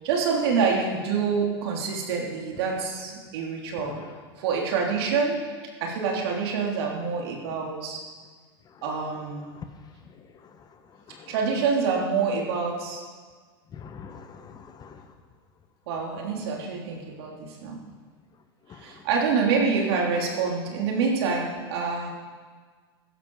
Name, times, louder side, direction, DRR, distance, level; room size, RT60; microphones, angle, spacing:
voice 1, 0.0-3.9 4.4-5.4 5.8-8.0 8.8-9.5 11.3-13.0 15.9-17.8 18.7-22.1, right 5 dB, 75° right, 0 dB, 3.3 m, -26 dB
voice 2, 13.7-15.0 18.7-18.8, left 6 dB, 30° left, 7 dB, 1.3 m, -44 dB
15.5 x 12.5 x 4.8 m, 1.5 s
hypercardioid pair, 110°, 13 cm